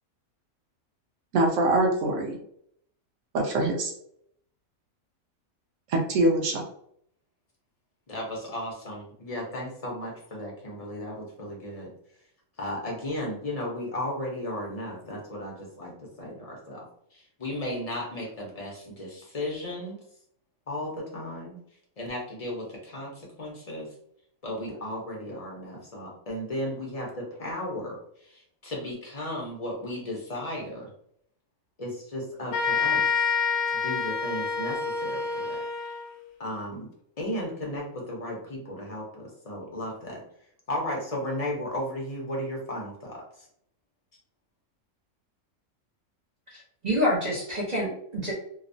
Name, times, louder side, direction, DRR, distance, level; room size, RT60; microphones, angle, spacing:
voice 1, 1.3-2.4 3.3-3.9 5.9-6.6, right 2 dB, 65° right, 1 dB, 1.0 m, -23 dB
voice 2, 8.1-11.9 12.6-16.8 17.1-20.0 20.7-21.6 22.0-23.9 24.4-28.0 28.2-30.9 31.8-33.1 33.7-35.6 36.4-36.9 37.2-40.2 40.7-43.2, left 1 dB, 45° left, -2 dB, 0.5 m, -35 dB
sound 1, 32.5-36.2, left 5 dB, 80° left, 1.1 m, -27 dB
voice 3, 46.5-48.3, equal, 45° right, -4 dB, 0.5 m, -27 dB
2.9 x 2.0 x 2.5 m, 0.68 s
omnidirectional pair, 1.5 m